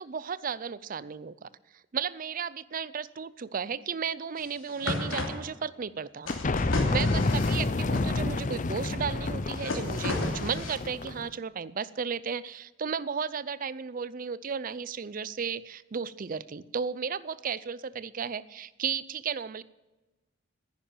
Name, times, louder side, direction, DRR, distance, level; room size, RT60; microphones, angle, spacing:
voice 1, 0.0-1.5 1.9-6.3 6.9-19.6, right 6 dB, 45° right, 18 dB, 0.5 m, -34 dB
sound 1, 4.4-4.5 4.7-5.3 6.3-8.1 9.3-10.8, left 2 dB, 80° left, 2.7 m, -33 dB
sound 2, 6.3-11.3, left 2 dB, 40° left, 0.6 m, -29 dB
10.5 x 10.0 x 8.9 m, 1.1 s
head